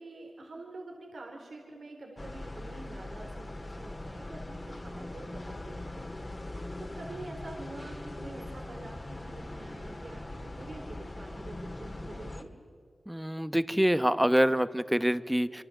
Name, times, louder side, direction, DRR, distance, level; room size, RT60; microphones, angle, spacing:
voice 1, 0.0-6.1 6.4-12.5, right 2 dB, 85° right, 1 dB, 3.7 m, -46 dB
sound 1, 2.2-12.4, left 1 dB, 30° left, 2.2 m, -41 dB
voice 2, 13.1-15.6, equal, 5° right, 13 dB, 1.0 m, -26 dB
27.5 x 26.0 x 7.8 m, 2.1 s
wide cardioid pair, 75°, 0 cm